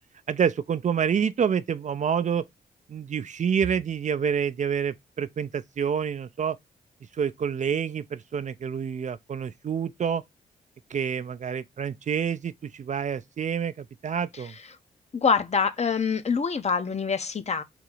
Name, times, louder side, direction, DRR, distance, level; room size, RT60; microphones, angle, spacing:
voice 1, 0.3-2.4 2.9-6.6 7.2-10.2 10.9-14.5, right 7 dB, 45° right, 0.4 m, -27 dB
voice 2, 15.1-17.6, left 5 dB, 40° left, 0.8 m, -25 dB
3.9 x 2.8 x 4.7 m
supercardioid pair, 55°, 17 cm